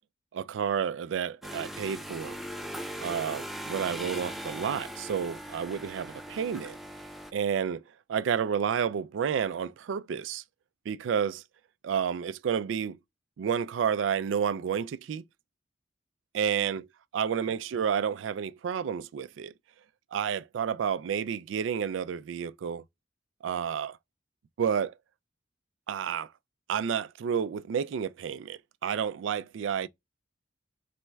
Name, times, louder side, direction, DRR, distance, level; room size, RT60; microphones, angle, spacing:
voice 1, 0.3-2.4 3.0-6.8 7.3-7.8 8.1-10.4 10.9-11.4 11.8-13.0 13.4-15.2 16.3-16.8 17.1-19.5 20.1-22.8 23.4-24.0 24.6-24.9 25.9-26.3 26.7-29.9, right 7 dB, 85° right, 0.3 m, -30 dB
sound 1, 1.4-7.3, equal, ahead, 0.4 m, -39 dB
4.2 x 2.3 x 3.0 m
head